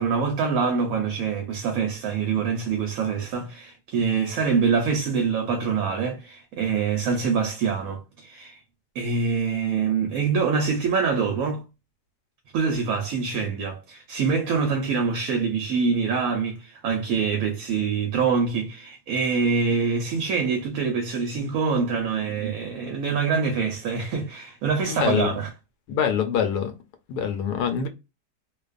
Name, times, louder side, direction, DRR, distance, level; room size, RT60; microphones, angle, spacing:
voice 1, 0.0-8.6 8.9-11.6 12.5-25.5, right 5 dB, 70° right, 0.9 m, -25 dB
voice 2, 24.9-25.3 25.9-26.7 27.1-27.9, left 7 dB, 75° left, 1.1 m, -24 dB
2.5 x 2.3 x 2.3 m
omnidirectional pair, 1.7 m